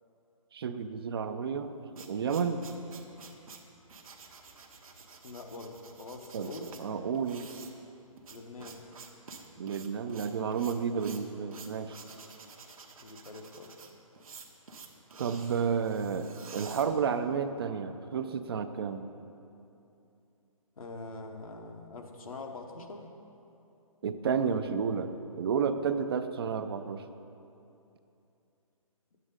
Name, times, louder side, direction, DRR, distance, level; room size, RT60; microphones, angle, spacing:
voice 1, 0.5-1.7 2.0-2.7 6.3-7.5 9.6-12.0 15.2-19.1 24.0-25.1 25.4-27.0, right 6 dB, 45° right, 10 dB, 0.4 m, -31 dB
sound 1, 1.6-17.5, right 4 dB, 75° right, 1.1 m, -50 dB
voice 2, 5.2-6.7 8.3-8.8 13.0-13.7 20.8-23.1, left 3 dB, 75° left, 3 dB, 1.1 m, -44 dB
9.8 x 8.1 x 3.8 m, 2.8 s
hypercardioid pair, 150°, 18 cm